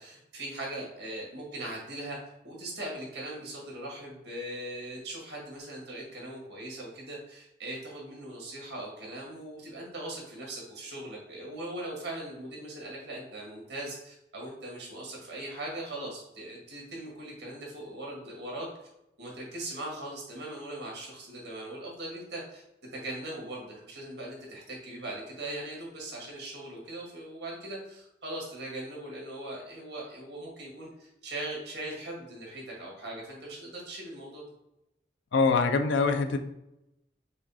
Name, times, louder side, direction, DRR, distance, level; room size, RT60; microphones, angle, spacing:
voice 1, 0.0-2.2 2.4-18.7 19.2-22.6 22.9-34.4, right 1 dB, 70° right, -2 dB, 1.7 m, -40 dB
voice 2, 35.3-36.4, left 4 dB, 90° left, 7 dB, 0.4 m, -24 dB
4.9 x 2.3 x 4.0 m, 0.86 s
head